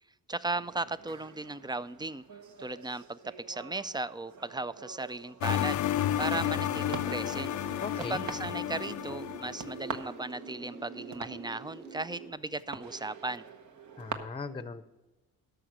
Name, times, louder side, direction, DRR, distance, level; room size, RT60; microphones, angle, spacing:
voice 1, 0.3-2.2 2.6-5.8 6.2-7.5 8.1-13.4, right 2 dB, 15° right, 15 dB, 0.4 m, -36 dB
sound 1, 0.5-14.1, right 6 dB, 55° right, 1.1 m, -46 dB
sound 2, 5.4-9.8, left 12 dB, 60° left, 0.5 m, -32 dB
sound 3, 6.0-12.3, right 3 dB, 80° right, 4.0 m, -45 dB
voice 2, 7.8-8.2 14.0-14.8, left 4 dB, 15° left, 11 dB, 0.7 m, -38 dB
12.5 x 6.3 x 6.1 m, 1.1 s
cardioid pair, 80°, 35 cm